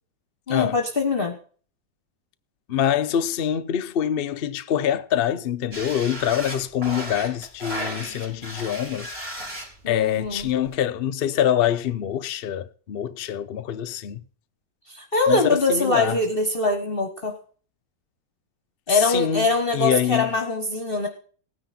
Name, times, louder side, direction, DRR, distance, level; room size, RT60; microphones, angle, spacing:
voice 1, 0.5-1.4 9.8-10.5 14.9-17.3 18.9-21.1, left 3 dB, 35° left, 1.3 m, -23 dB
voice 2, 2.7-9.1 9.9-14.2 15.3-16.2 18.9-20.3, left 10 dB, 75° left, 0.5 m, -25 dB
sound 1, 5.7-10.7, equal, 30° right, 3.6 m, -35 dB
16.5 x 9.8 x 4.3 m
omnidirectional pair, 2.0 m